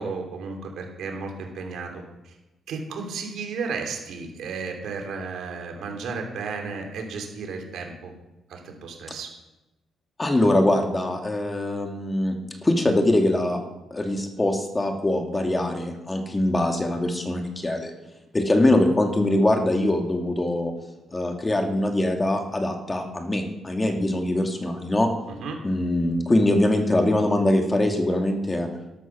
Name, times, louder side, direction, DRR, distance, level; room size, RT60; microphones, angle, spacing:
voice 1, 0.0-1.9 2.2-2.3 2.7-8.1 8.5-9.3 25.4-25.6, right 4 dB, 75° right, 2 dB, 3.4 m, -33 dB
voice 2, 10.2-13.6 13.9-17.9 18.3-20.7 21.1-25.1 25.6-28.7, left 1 dB, 20° left, 4 dB, 2.3 m, -23 dB
12.5 x 12.5 x 6.2 m, 1.0 s
cardioid pair, 90°, 0 cm